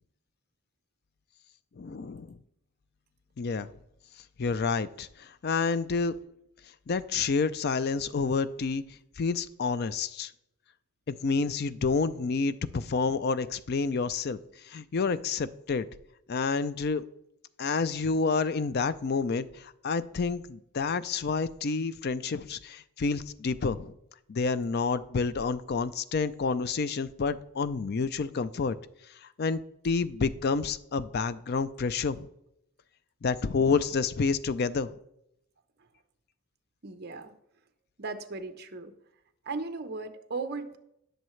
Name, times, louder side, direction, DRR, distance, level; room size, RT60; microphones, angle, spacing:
voice 1, 1.8-2.4 3.4-3.7 4.4-6.1 6.9-8.8 9.2-10.3 11.1-14.4 14.7-15.9 16.3-17.0 17.6-23.9 24.3-28.8 29.4-32.3 33.2-34.9, left 4 dB, 45° left, 14 dB, 0.4 m, -29 dB
voice 2, 36.8-37.3 38.0-38.9 39.4-40.8, right 3 dB, 45° right, 8 dB, 0.8 m, -37 dB
18.0 x 6.5 x 3.2 m, 0.81 s
head